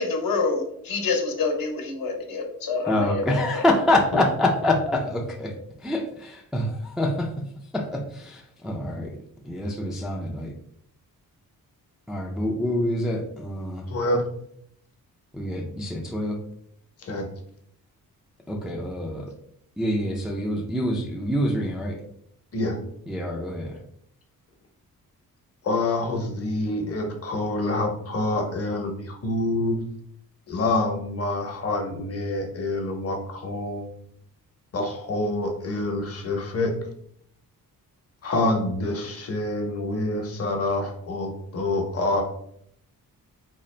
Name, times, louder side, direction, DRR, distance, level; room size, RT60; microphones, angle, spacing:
voice 1, 0.0-3.7, left 4 dB, 70° left, 2 dB, 0.9 m, -27 dB
voice 2, 2.8-5.5 5.8-7.3 7.7-9.1 9.4-10.5 12.1-13.9 14.1-14.2 15.3-16.4 18.5-19.3 19.8-22.0 23.1-23.8, left 1 dB, ahead, 0 dB, 0.3 m, -26 dB
voice 3, 13.9-14.2 17.0-17.3 22.5-22.8 25.6-29.8 30.5-33.9 34.7-36.7 38.2-42.2, left 2 dB, 40° left, 2 dB, 0.8 m, -27 dB
3.9 x 2.4 x 3.2 m, 0.69 s
wide cardioid pair, 135°, 35 cm